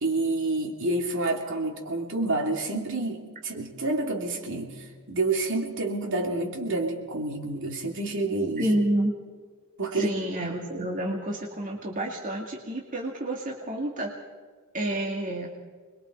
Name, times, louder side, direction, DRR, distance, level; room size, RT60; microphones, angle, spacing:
voice 1, 0.0-8.7 9.8-10.2, right 2 dB, 60° right, 1 dB, 3.0 m, -28 dB
voice 2, 8.6-9.1 9.9-14.1 14.7-15.5, right 1 dB, 35° right, -1 dB, 2.3 m, -29 dB
26.0 x 22.0 x 4.6 m, 1.5 s
head